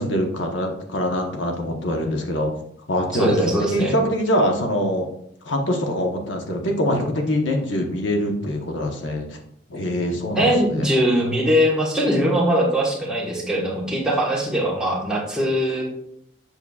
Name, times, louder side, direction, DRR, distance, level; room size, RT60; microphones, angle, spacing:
voice 1, 0.0-2.5 2.9-5.1 5.4-9.4 9.7-10.5 13.6-13.9, equal, 70° left, 2 dB, 1.0 m, -24 dB
voice 2, 3.1-3.9 10.3-15.8, equal, 5° right, -4 dB, 1.3 m, -21 dB
7.2 x 6.7 x 2.4 m, 0.71 s
head